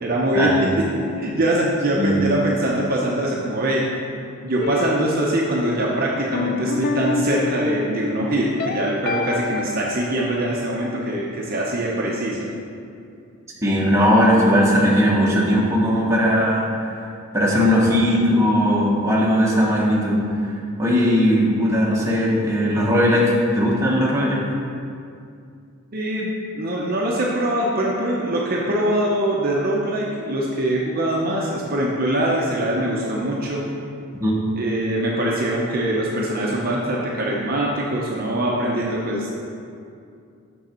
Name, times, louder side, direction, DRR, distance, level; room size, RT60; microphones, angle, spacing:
voice 1, 0.0-3.9 4.4-12.5 25.9-33.7 34.5-39.5, right 1 dB, 40° right, -3 dB, 0.7 m, -23 dB
sound 1, 4.6-10.0, left 4 dB, 45° left, 0.3 m, -27 dB
voice 2, 13.6-16.7 17.3-20.2 20.8-24.4 34.2-34.4, equal, 15° right, -4 dB, 1.0 m, -18 dB
6.3 x 6.2 x 4.3 m, 2.4 s
head